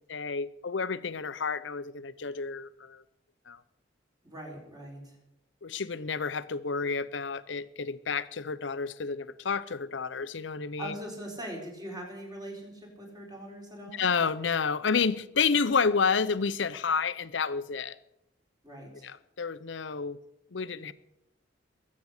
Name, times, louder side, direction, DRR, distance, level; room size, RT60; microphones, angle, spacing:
voice 1, 0.1-3.0 3.5-3.6 5.6-10.9 13.9-18.0 19.0-20.2 20.5-20.9, left 5 dB, 70° left, 15 dB, 0.7 m, -30 dB
voice 2, 4.2-5.2 10.8-14.0 18.6-19.1, right 1 dB, 20° right, 0 dB, 4.6 m, -41 dB
21.5 x 8.5 x 6.5 m, 0.87 s
head